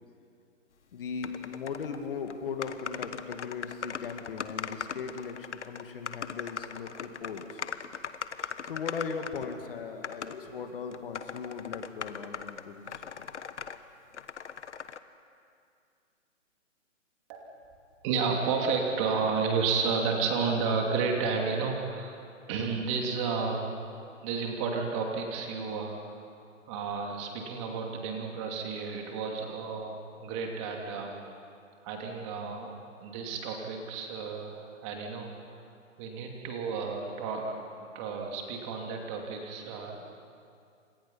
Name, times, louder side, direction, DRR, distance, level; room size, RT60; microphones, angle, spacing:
voice 1, 0.9-7.6 8.4-13.2, left 5 dB, 45° left, 5 dB, 2.3 m, -38 dB
sound 1, 1.2-2.0 2.3-2.4 2.6-9.6 10.0-10.4 10.9-13.8 14.1-15.0, left 7 dB, 65° left, 1.3 m, -39 dB
voice 2, 18.0-22.2 22.5-23.7 24.2-26.4 26.7-31.1 31.8-32.7 33.0-35.6 36.0-40.1, right 5 dB, 25° right, 1 dB, 2.8 m, -32 dB
29.5 x 25.5 x 5.6 m, 2.4 s
hypercardioid pair, 150°, 38 cm